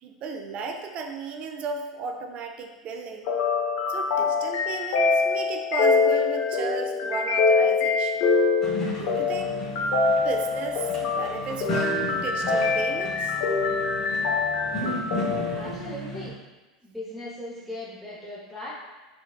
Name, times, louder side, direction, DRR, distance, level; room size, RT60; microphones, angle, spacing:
voice 1, 0.0-3.3 3.9-8.2 8.9-9.6 10.2-13.4, right 4 dB, 40° right, 4 dB, 0.4 m, -34 dB
sound 1, 3.3-15.6, left 4 dB, 60° left, 0.6 m, -24 dB
sound 2, 8.6-16.3, left 1 dB, 25° left, 1.0 m, -35 dB
voice 2, 15.5-16.4 16.8-18.7, left 1 dB, ahead, -9 dB, 0.7 m, -38 dB
4.5 x 2.2 x 2.2 m, 1.2 s
hypercardioid pair, 90°, 3 cm